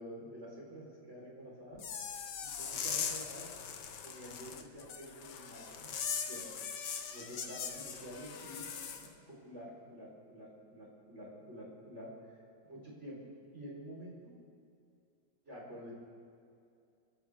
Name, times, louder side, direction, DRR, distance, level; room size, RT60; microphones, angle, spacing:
voice 1, 0.0-1.8 2.6-3.5 4.0-6.0 6.3-6.4 7.1-8.6 8.9-12.4 12.7-13.2 13.5-14.4 15.4-15.9, equal, 35° right, -5 dB, 4.7 m, -49 dB
sound 1, 1.8-9.1, left 7 dB, 70° left, 1.6 m, -40 dB
26.0 x 14.5 x 3.6 m, 2.5 s
omnidirectional pair, 2.0 m